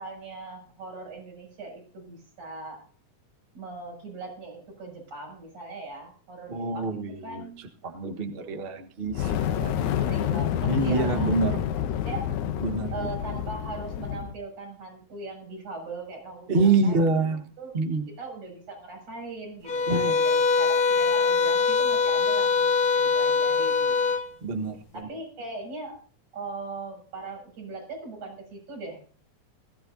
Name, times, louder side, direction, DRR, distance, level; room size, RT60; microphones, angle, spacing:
voice 1, 0.0-2.9 3.5-7.6 9.9-11.4 11.7-12.3 12.9-17.7 18.2-24.1 24.9-26.0 26.3-29.0, right 3 dB, 80° right, 0 dB, 8.6 m, -40 dB
voice 2, 6.5-7.4 7.8-9.9 10.7-11.6 12.6-12.9 16.5-17.5 17.7-18.1 19.9-20.2 24.4-24.8, right 3 dB, 40° right, 4 dB, 0.7 m, -26 dB
Fire, 9.1-14.4, left 10 dB, 90° left, 2.3 m, -28 dB
sound 1, 19.7-24.3, left 5 dB, 45° left, 1.2 m, -23 dB
20.5 x 15.5 x 2.8 m, 0.42 s
omnidirectional pair, 3.4 m